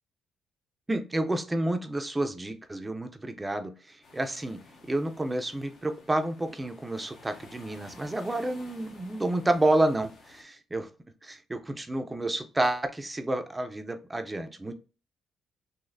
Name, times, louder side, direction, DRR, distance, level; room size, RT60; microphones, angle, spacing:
voice 1, 0.9-4.6 4.9-10.9 11.2-14.7, right 1 dB, 15° right, 7 dB, 0.5 m, -29 dB
sound 1, 4.0-10.4, left 3 dB, 65° left, 1.0 m, -53 dB
4.0 x 2.7 x 2.6 m, 0.35 s
cardioid pair, 90°, 0 cm